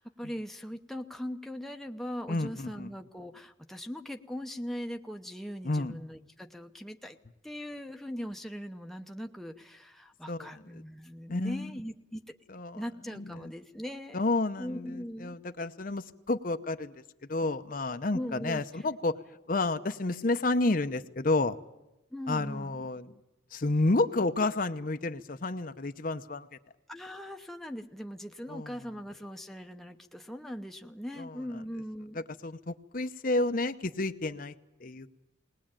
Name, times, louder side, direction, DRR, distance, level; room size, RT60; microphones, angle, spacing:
voice 1, 0.0-7.2 7.4-12.3 12.7-14.3 14.6-15.4 18.1-18.9 22.1-22.8 26.9-32.2, equal, ahead, 4 dB, 0.8 m, -40 dB
voice 2, 2.3-2.9 5.6-5.9 10.3-10.5 11.3-11.7 12.5-12.8 13.1-13.5 14.1-16.9 17.3-19.1 19.5-21.6 22.3-23.1 23.5-26.5 28.5-28.7 31.2-31.6 32.4-34.5 34.8-35.1, left 2 dB, 45° left, 9 dB, 0.8 m, -30 dB
20.0 x 19.5 x 8.9 m, 0.93 s
head